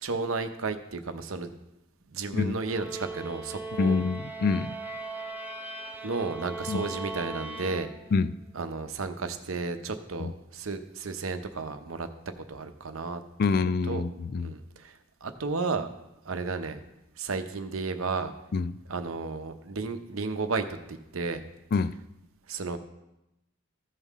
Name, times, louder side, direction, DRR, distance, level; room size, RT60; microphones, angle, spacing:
voice 1, 0.0-1.5 2.1-4.0 6.0-7.9 8.5-12.1 12.5-13.2 13.9-14.0 14.4-14.9 15.2-15.9 16.2-16.8 17.2-18.3 18.9-21.4 22.5-22.8, right 4 dB, 75° right, 8 dB, 0.8 m, -33 dB
sound 1, 2.6-8.3, right 2 dB, 10° right, 0.7 m, -38 dB
voice 2, 3.8-4.7 6.7-6.8 8.1-8.3 10.2-10.3 13.4-14.5 18.5-18.7 21.7-21.9, left 4 dB, 45° left, 14 dB, 0.4 m, -26 dB
15.0 x 5.6 x 3.6 m, 0.89 s
head